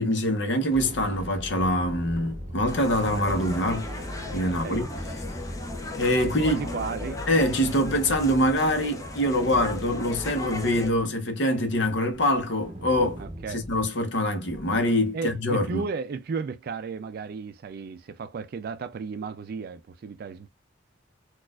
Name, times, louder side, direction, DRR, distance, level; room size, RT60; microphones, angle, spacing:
voice 1, 0.0-3.9 4.3-4.9 6.0-6.6 7.3-13.2 13.5-15.9, left 1 dB, 65° left, 0.8 m, -24 dB
sound 1, 0.7-8.7 9.3-11.1 11.9-13.9 14.5-14.8, equal, 30° right, 0.8 m, -39 dB
sound 2, 2.7-10.9, left 2 dB, 15° left, 0.5 m, -37 dB
voice 2, 4.4-4.8 6.4-7.2 13.2-13.6 15.1-20.5, right 5 dB, 50° right, 0.3 m, -34 dB
4.1 x 2.4 x 2.3 m
head